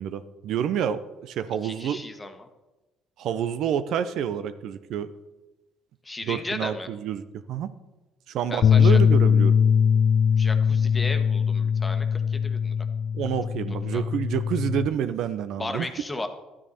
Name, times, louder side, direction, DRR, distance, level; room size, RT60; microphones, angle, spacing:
voice 1, 0.0-2.0 3.2-5.1 6.2-7.7 8.3-9.6 13.1-15.9, right 9 dB, 70° right, 12 dB, 0.6 m, -28 dB
voice 2, 1.6-2.5 6.0-6.9 8.5-9.0 10.4-12.8 13.9-14.0 15.6-16.3, left 2 dB, 20° left, 7 dB, 1.3 m, -35 dB
Bass guitar, 8.6-14.9, left 7 dB, 55° left, 0.3 m, -21 dB
12.0 x 9.8 x 4.2 m, 1.1 s
supercardioid pair, 75°, 0 cm